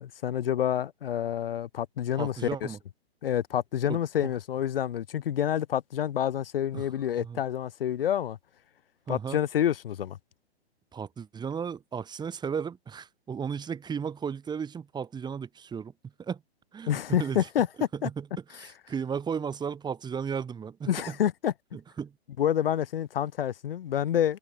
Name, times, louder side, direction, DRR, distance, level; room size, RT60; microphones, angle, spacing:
voice 1, 0.0-2.7 3.2-8.4 9.1-10.2 16.9-17.7 18.0-18.1 20.9-21.5 22.4-24.4, left 10 dB, 60° left, 2.7 m, -28 dB
voice 2, 2.1-2.8 3.9-4.0 6.7-6.9 7.2-7.4 9.1-9.4 10.9-15.9 16.2-16.4 16.7-17.5 17.9-18.3 18.5-21.1 21.7-22.1, right 7 dB, 15° right, 5.8 m, -35 dB
hypercardioid pair, 130°, 33 cm